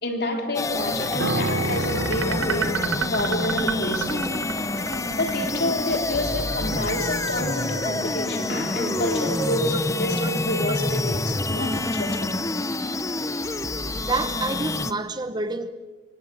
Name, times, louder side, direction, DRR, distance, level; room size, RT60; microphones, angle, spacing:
voice 1, 0.0-4.3 5.1-12.3, left 1 dB, 55° left, 3.8 m, -28 dB
sound 1, 0.5-14.9, left 2 dB, 15° left, 0.8 m, -27 dB
sound 2, 1.0-8.1, right 7 dB, 85° right, 1.4 m, -32 dB
Piano, 1.2-10.6 10.8-11.1, right 2 dB, 65° right, 0.9 m, -34 dB
voice 2, 14.0-15.7, right 3 dB, 20° right, 1.0 m, -28 dB
27.0 x 25.0 x 7.7 m
head